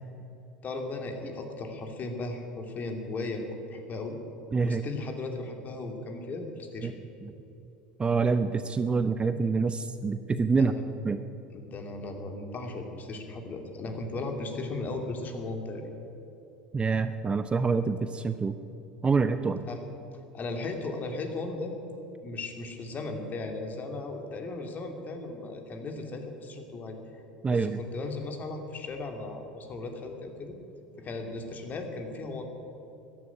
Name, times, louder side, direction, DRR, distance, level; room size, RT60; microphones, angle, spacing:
voice 1, 0.6-4.2 4.6-6.9 10.4-10.8 11.5-15.9 19.7-19.8 20.3-21.7 22.2-27.0 27.5-30.6 31.0-32.4, left 2 dB, 35° left, 4 dB, 2.6 m, -36 dB
voice 2, 4.5-4.8 6.8-6.9 7.2-7.3 8.0-10.7 11.0-11.2 16.7-18.5 19.0-19.6 27.4-27.8, right 4 dB, 20° right, 11 dB, 0.7 m, -26 dB
14.0 x 10.5 x 9.5 m, 2.9 s
hypercardioid pair, 75°, 5 cm